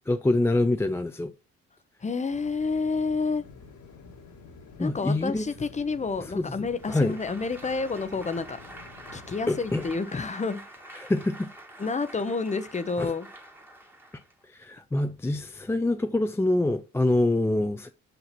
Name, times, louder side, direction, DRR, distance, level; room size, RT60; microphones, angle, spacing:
voice 1, 0.1-1.3 4.8-5.5 6.2-6.5 6.9-7.2 9.5-9.9 10.9-11.5 13.0-13.1 14.5-17.9, left 2 dB, 10° left, 0.4 m, -25 dB
voice 2, 2.0-3.4 4.8-8.6 9.1-11.1 11.8-13.3, left 4 dB, 25° left, 0.8 m, -29 dB
sound 1, 2.3-10.0, left 4 dB, 70° left, 1.8 m, -49 dB
Applause, 6.7-14.4, right 1 dB, 5° right, 1.5 m, -47 dB
8.1 x 2.9 x 5.8 m
cardioid pair, 90°, 30 cm